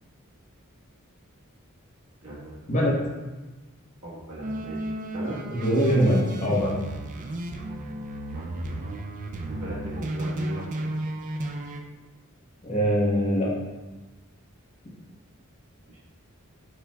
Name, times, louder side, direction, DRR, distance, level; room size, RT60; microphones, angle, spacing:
voice 1, 2.2-2.9 4.0-5.4 8.3-8.8 9.5-10.9 15.9-16.0, right 1 dB, 85° right, -6 dB, 1.3 m, -38 dB
sound 1, 4.4-11.8, right 1 dB, 35° right, 0.3 m, -33 dB
voice 2, 5.6-6.8 12.6-13.5, equal, 35° left, -5 dB, 1.0 m, -22 dB
5.7 x 3.2 x 2.3 m, 1.2 s
head